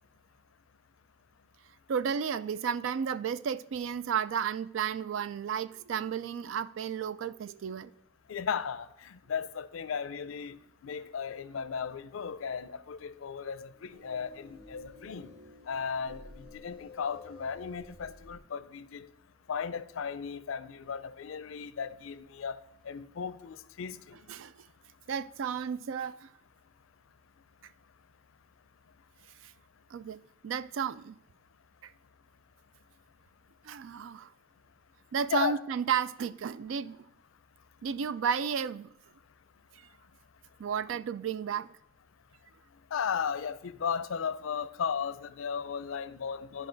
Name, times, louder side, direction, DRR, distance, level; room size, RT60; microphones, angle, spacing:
voice 1, 1.9-7.9 24.3-24.7 25.1-26.3 29.4-29.5 29.9-31.2 31.8-31.9 33.6-34.3 35.1-37.0 37.8-38.9 40.6-41.7, right 7 dB, 75° right, 0.4 m, -33 dB
voice 2, 8.3-15.3 15.7-19.1 19.5-24.2 35.3-35.6 42.9-46.7, left 6 dB, 90° left, 0.4 m, -35 dB
sound 1, 13.7-18.4, left 2 dB, 50° right, 2.5 m, -52 dB
11.5 x 5.1 x 3.9 m
head